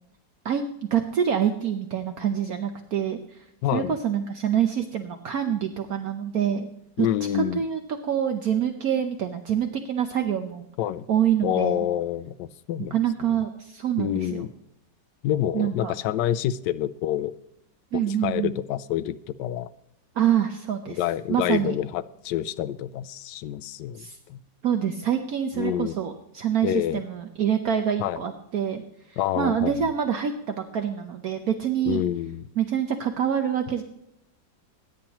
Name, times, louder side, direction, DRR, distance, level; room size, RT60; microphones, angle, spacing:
voice 1, 0.9-3.4 3.7-6.7 7.0-7.1 7.3-10.7 11.1-11.9 12.8-14.5 15.5-15.9 17.9-18.5 20.1-21.0 21.3-21.7 24.0-24.2 24.6-28.8 29.1-32.0 32.6-33.8, right 9 dB, 60° right, 6 dB, 1.3 m, -26 dB
voice 2, 3.6-4.0 7.0-7.6 10.8-11.1 11.4-13.0 14.0-14.5 15.2-17.3 18.1-19.7 20.9-24.4 25.5-25.9 26.6-27.0 28.0-28.2 29.2-29.7 31.8-32.5, left 12 dB, 80° left, 13 dB, 1.2 m, -27 dB
21.0 x 10.0 x 3.0 m, 0.80 s
omnidirectional pair, 1.9 m